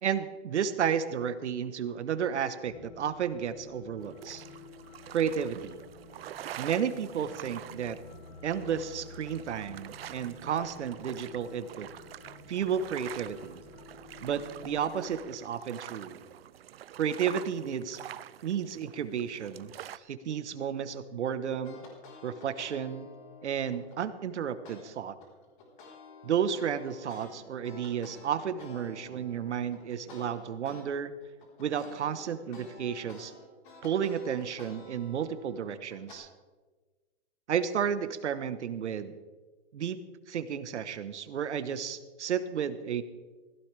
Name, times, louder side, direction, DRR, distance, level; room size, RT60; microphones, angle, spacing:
voice 1, 0.0-4.4 5.1-5.8 6.6-8.0 8.4-11.9 12.5-13.6 14.2-16.2 16.9-18.0 18.4-21.8 22.2-23.1 23.4-25.2 26.2-31.1 31.6-33.3 33.8-36.3 37.5-39.1 39.7-40.0 40.3-43.0, right 8 dB, 85° right, 12 dB, 1.2 m, -32 dB
sound 1, 2.7-15.2, left 5 dB, 20° left, 0.8 m, -51 dB
sound 2, 4.0-20.0, right 11 dB, 60° right, 0.6 m, -46 dB
sound 3, 21.6-24.0 24.6-24.8 25.2-30.8 31.2-36.2, left 3 dB, 45° left, 4.1 m, -51 dB
16.5 x 15.5 x 3.4 m, 1.3 s
hypercardioid pair, 160°, 34 cm